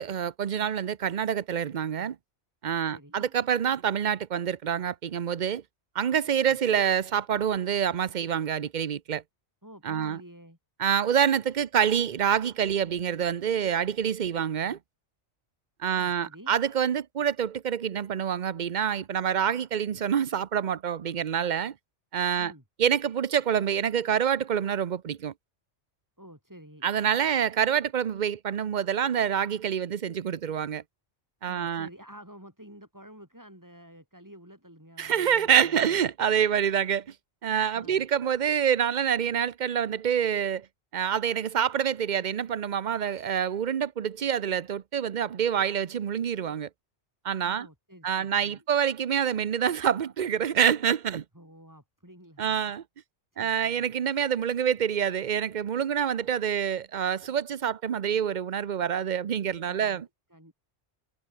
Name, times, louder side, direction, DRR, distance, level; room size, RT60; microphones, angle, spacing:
voice 1, 0.0-2.2 2.6-5.6 5.9-9.2 9.8-10.2 10.8-14.8 15.8-21.7 22.1-22.5 22.8-25.3 26.8-30.8 31.4-31.9 35.0-37.0 37.4-40.7 40.9-46.7 47.2-47.7 48.0-51.2 52.4-52.8 53.4-60.1, right 8 dB, 45° right, 0.7 m, -26 dB
voice 2, 2.9-3.3 6.4-6.6 9.6-10.6 15.9-16.6 22.4-22.6 26.2-26.9 31.5-36.0 37.7-38.1 47.4-48.6 51.3-52.7 53.3-53.9 59.7-60.5, equal, 15° right, 7.2 m, -50 dB
omnidirectional pair, 1.2 m